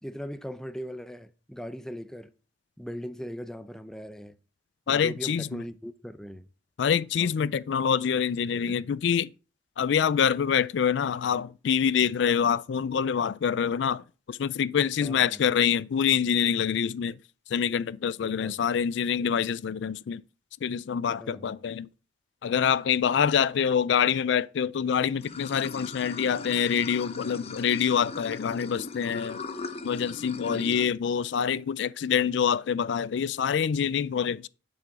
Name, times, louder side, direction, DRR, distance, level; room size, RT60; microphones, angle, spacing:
voice 1, 0.0-2.3 2.8-4.4 4.9-6.5 7.2-7.3 8.6-8.8 15.0-15.4 18.2-18.6 21.2-21.5 30.5-30.8, equal, 5° left, 0.5 m, -39 dB
voice 2, 4.9-5.6 6.8-9.3 9.8-17.2 17.5-20.2 20.6-21.9 22.4-29.4 29.8-34.5, left 7 dB, 65° left, 0.4 m, -26 dB
Water / Sink (filling or washing), 25.2-30.9, left 3 dB, 35° left, 0.9 m, -39 dB
10.0 x 6.1 x 4.7 m
head